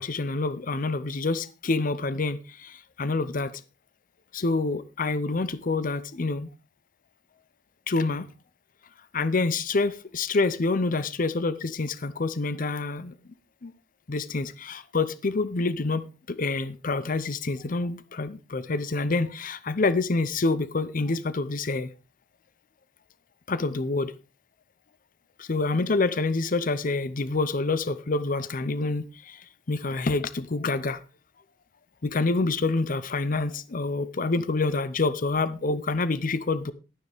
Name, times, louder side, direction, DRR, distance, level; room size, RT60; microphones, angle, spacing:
voice 1, 0.0-3.5 4.3-6.5 7.9-8.3 9.1-13.1 13.6-13.7 14.1-21.9 23.5-24.1 25.4-29.4 29.7-31.0 32.0-36.7, left 3 dB, 50° left, 0.7 m, -27 dB
12.0 x 9.7 x 3.5 m
head